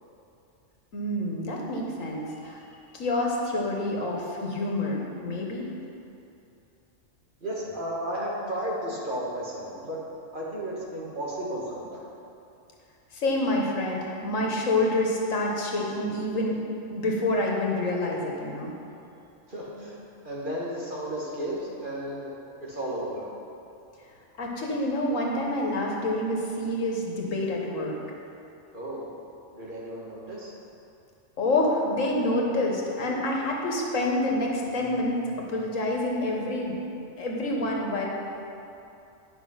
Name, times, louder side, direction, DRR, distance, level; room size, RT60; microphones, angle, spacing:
voice 1, 0.9-2.6 2.9-5.7 13.1-16.6 16.9-18.7 24.4-28.0 31.4-35.2 35.5-36.8 37.2-38.1, left 1 dB, 80° left, -1 dB, 1.6 m, -27 dB
voice 2, 7.4-10.0 10.3-12.1 19.5-20.0 20.2-22.3 22.6-23.3 28.7-29.1 29.5-30.5, right 1 dB, 40° right, -6 dB, 1.9 m, -33 dB
10.5 x 5.7 x 5.7 m, 2.7 s
omnidirectional pair, 1.3 m